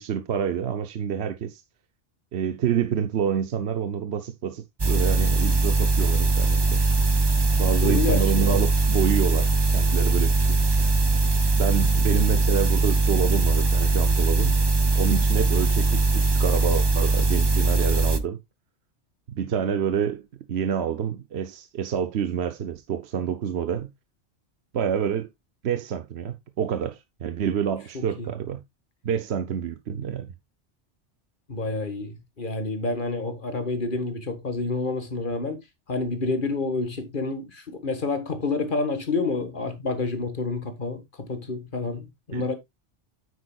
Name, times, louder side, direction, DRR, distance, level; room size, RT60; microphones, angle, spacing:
voice 1, 0.0-1.6 2.3-6.8 7.6-10.9 11.6-14.6 14.9-18.4 19.3-23.9 24.7-25.3 25.6-28.6 29.0-30.3 42.3-42.5, right 8 dB, 65° right, 1.0 m, -28 dB
sound 1, 4.8-18.2, right 2 dB, 25° right, 0.6 m, -21 dB
voice 2, 7.8-8.6 28.2-28.3 31.5-35.6 35.9-42.5, left 3 dB, 45° left, 1.9 m, -28 dB
9.4 x 8.4 x 2.3 m
omnidirectional pair, 1.2 m